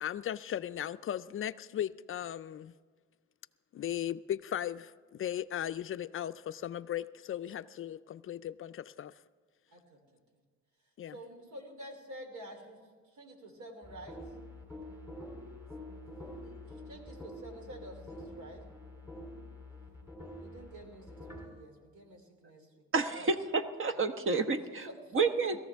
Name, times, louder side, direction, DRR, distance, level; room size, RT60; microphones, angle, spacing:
voice 1, 0.0-2.7 3.7-9.1 11.0-11.2, left 11 dB, 45° left, 13 dB, 0.4 m, -37 dB
voice 2, 9.7-10.0 11.1-12.8 13.1-14.2 16.6-18.7 20.4-23.2 24.9-25.5, equal, 70° right, 4 dB, 3.0 m, -49 dB
sound 1, 13.8-21.5, left 1 dB, 5° right, 3.3 m, -47 dB
voice 3, 22.9-24.9 25.1-25.6, right 4 dB, 45° right, 8 dB, 1.1 m, -29 dB
19.5 x 14.0 x 3.5 m, 1.5 s
cardioid pair, 90°, 30 cm